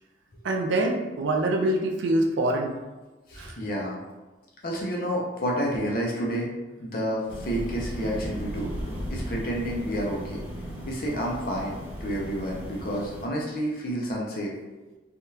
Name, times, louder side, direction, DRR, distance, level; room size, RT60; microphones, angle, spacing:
voice 1, 0.4-2.8 3.4-3.6, right 1 dB, 70° right, 2 dB, 0.4 m, -25 dB
voice 2, 3.3-4.0 4.6-6.5 6.8-8.7 9.1-10.4 10.8-14.5, equal, 45° left, -3 dB, 0.5 m, -29 dB
sound 1, 7.3-13.2, equal, 10° right, 0.6 m, -36 dB
3.4 x 2.3 x 2.7 m, 1.2 s
head